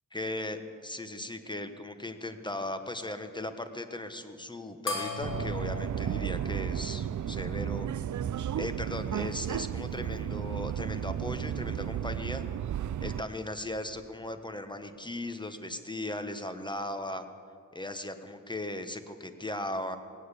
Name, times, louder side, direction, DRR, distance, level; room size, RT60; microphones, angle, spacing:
voice 1, 0.1-7.9 8.6-12.4 13.0-17.2 17.7-20.0, left 1 dB, 15° left, 8 dB, 1.2 m, -37 dB
sound 1, 4.9-7.7, left 3 dB, 80° left, 2.6 m, -38 dB
Subway metro underground, 5.2-13.2, right 10 dB, 65° right, 0.5 m, -33 dB
17.5 x 9.3 x 8.3 m, 2.3 s
cardioid pair, 60°, 32 cm